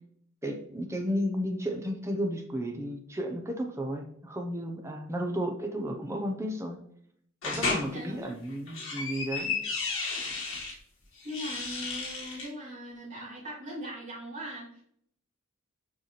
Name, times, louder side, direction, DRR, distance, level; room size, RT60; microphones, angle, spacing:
voice 1, 0.4-6.8 7.4-9.6, equal, 15° right, 3 dB, 0.8 m, -33 dB
sound 1, 7.4-7.9 8.5-10.7 11.2-12.5, left 4 dB, 65° left, 2.0 m, -33 dB
voice 2, 7.8-8.3 11.2-14.8, equal, 40° right, -6 dB, 2.9 m, -40 dB
6.7 x 5.5 x 3.3 m, 0.67 s
head